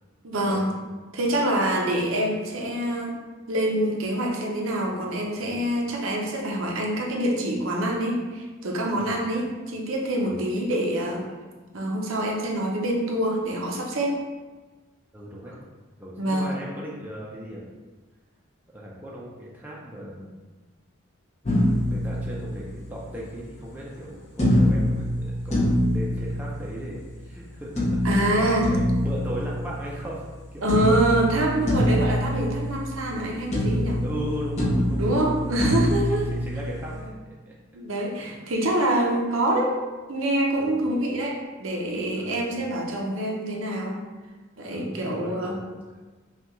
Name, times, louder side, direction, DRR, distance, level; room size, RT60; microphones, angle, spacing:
voice 1, 0.2-0.7 1.1-3.2 3.5-11.2 11.7-14.2 16.2-16.5 28.0-28.7 30.6-34.0 35.0-36.3 37.7-39.7 40.1-44.0 44.6-45.6, right 1 dB, 75° right, -1 dB, 0.7 m, -25 dB
voice 2, 15.1-15.5 16.0-17.6 18.7-20.3 21.8-31.2 34.0-35.5 36.1-37.5 38.2-38.3 40.5-40.9 42.1-42.6 44.7-45.6 45.9-46.0, equal, 10° right, -5 dB, 0.5 m, -37 dB
sound 1, 21.4-23.0 24.4-27.0 27.8-30.3 30.7-33.2 33.5-37.0, equal, 30° left, 0.8 m, -25 dB
5.6 x 2.4 x 3.0 m, 1.3 s
head